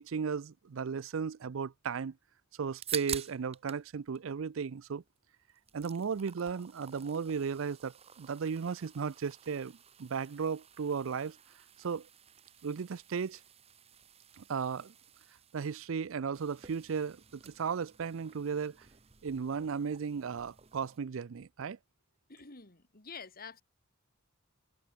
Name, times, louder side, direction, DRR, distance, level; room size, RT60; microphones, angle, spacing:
voice 1, 0.0-2.2 2.6-5.0 5.7-11.4 11.8-12.1 12.6-13.4 14.4-14.9 15.5-18.9 19.2-21.8, right 6 dB, 65° right, 0.5 m, -35 dB
sound 1, 2.6-3.9 4.1-5.2 5.5-21.0, right 8 dB, 30° right, 1.0 m, -49 dB
voice 2, 22.3-23.6, left 5 dB, 45° left, 2.6 m, -48 dB
head